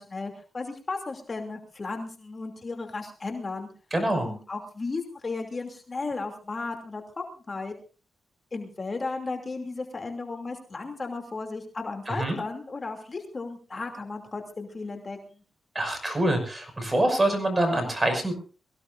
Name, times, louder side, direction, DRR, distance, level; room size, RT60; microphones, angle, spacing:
voice 1, 0.0-3.7 4.2-7.7 8.5-15.4, left 3 dB, 35° left, 3 dB, 2.8 m, -35 dB
voice 2, 3.9-4.3 12.1-12.4 15.7-18.3, right 1 dB, 20° right, 5 dB, 5.9 m, -25 dB
23.5 x 16.0 x 2.6 m, 0.35 s
cardioid pair, 80°, 0 cm